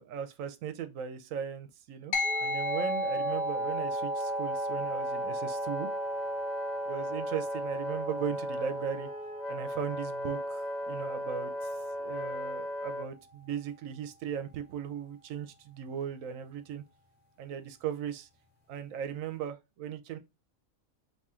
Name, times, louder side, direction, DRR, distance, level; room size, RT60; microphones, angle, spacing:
voice 1, 0.0-2.1 2.4-5.9 6.9-9.1 9.5-11.7 12.0-16.8 17.4-18.3 18.7-20.2, right 8 dB, 75° right, 1.0 m, -38 dB
sound 1, 2.1-11.8, equal, 65° left, 1.1 m, -36 dB
Wind instrument woodwind instrument, 2.2-13.1, equal, 40° left, 0.7 m, -36 dB
3.6 x 2.9 x 4.2 m
omnidirectional pair, 1.4 m